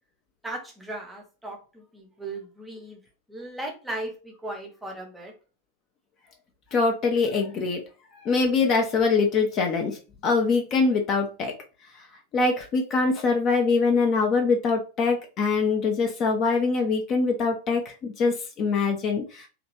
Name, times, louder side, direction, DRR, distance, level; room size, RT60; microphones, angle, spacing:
voice 1, 0.4-3.0 3.3-5.3, right 1 dB, 5° right, 1 dB, 0.8 m, -37 dB
voice 2, 6.7-7.8 8.1-10.0 10.2-11.6 12.3-19.5, left 4 dB, 35° left, 3 dB, 0.5 m, -23 dB
2.9 x 2.3 x 2.9 m, 0.33 s
figure-of-eight pair, 90°, 0 cm